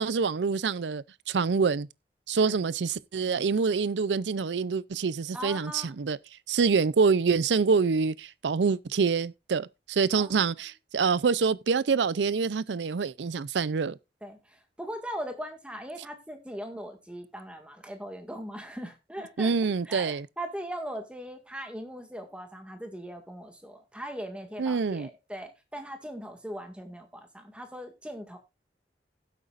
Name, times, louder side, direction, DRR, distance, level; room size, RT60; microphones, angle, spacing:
voice 1, 0.0-1.9 2.3-6.2 6.5-14.0 19.4-20.3 24.6-25.1, right 5 dB, 80° right, 0.5 m, -26 dB
voice 2, 5.3-6.1 10.1-10.5 14.2-19.5 19.9-28.4, equal, 5° right, 1.9 m, -40 dB
16.0 x 8.1 x 2.5 m
head